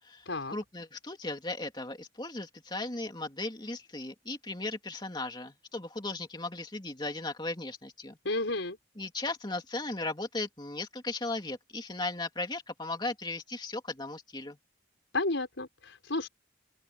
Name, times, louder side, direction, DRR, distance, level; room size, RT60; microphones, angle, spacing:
voice 1, 0.0-8.2 9.0-14.6, left 2 dB, 25° left, 2.8 m, -37 dB
voice 2, 8.2-8.8 15.1-16.3, left 2 dB, 85° left, 5.2 m, -32 dB
open air
head